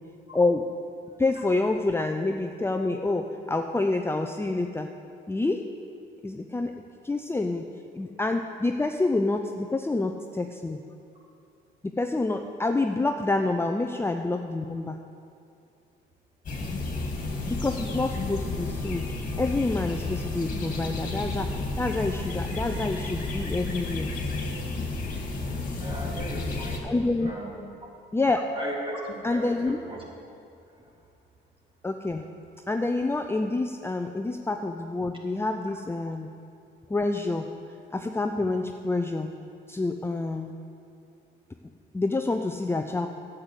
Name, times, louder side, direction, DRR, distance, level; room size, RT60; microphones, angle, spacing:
voice 1, 0.3-0.6 1.2-4.9 5.3-5.7 6.2-6.7 7.0-7.7 7.9-10.8 11.8-15.0 17.4-19.1 19.4-24.1 26.8-27.3 28.1-28.4 29.2-29.8 31.8-32.3 32.7-36.3 36.9-37.5 37.9-39.3 39.7-40.5 41.9-43.1, left 2 dB, 10° left, 4 dB, 0.6 m, -27 dB
sound 1, 16.4-26.8, left 2 dB, 40° left, 2.3 m, -32 dB
voice 2, 25.7-26.9 27.2-27.6 28.5-30.0 30.8-30.9, equal, 25° right, -3 dB, 3.2 m, -37 dB
11.0 x 8.1 x 8.3 m, 2.5 s
cardioid pair, 90°, 20 cm